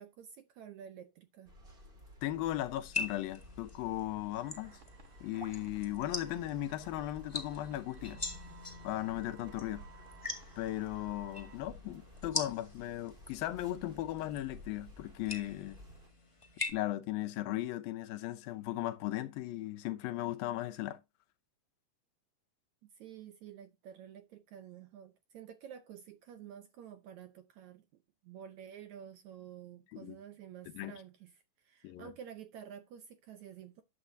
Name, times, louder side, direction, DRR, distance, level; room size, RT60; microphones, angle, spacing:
voice 1, 0.0-1.5 22.8-27.8 28.2-33.8, right 9 dB, 75° right, 1.8 m, -50 dB
sound 1, 1.4-16.1, left 1 dB, 20° right, 1.6 m, -54 dB
voice 2, 2.2-4.8 5.2-8.2 8.8-9.8 10.6-15.8 16.7-21.0 29.9-30.2 30.7-30.9 31.8-32.1, left 14 dB, 80° left, 2.7 m, -37 dB
sound 2, 2.8-16.7, left 3 dB, 20° left, 0.7 m, -44 dB
sound 3, 4.4-11.6, right 8 dB, 55° right, 1.4 m, -59 dB
11.5 x 8.5 x 2.7 m
omnidirectional pair, 4.1 m